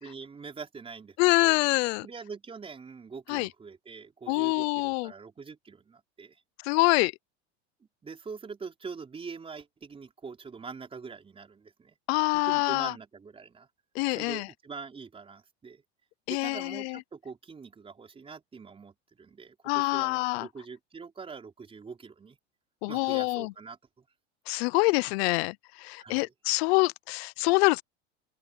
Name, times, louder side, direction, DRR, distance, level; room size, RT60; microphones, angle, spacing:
voice 1, 0.0-1.6 2.0-6.4 8.0-12.0 12.3-13.7 14.1-15.8 16.3-22.4 22.9-24.0 26.0-26.3, right 5 dB, 15° right, 4.9 m, -44 dB
voice 2, 1.2-2.1 3.3-3.5 4.3-5.1 6.6-7.1 12.1-12.9 14.0-14.5 16.3-17.0 19.6-20.5 22.8-23.5 24.5-27.8, left 26 dB, 65° left, 0.6 m, -25 dB
supercardioid pair, 145°, 34 cm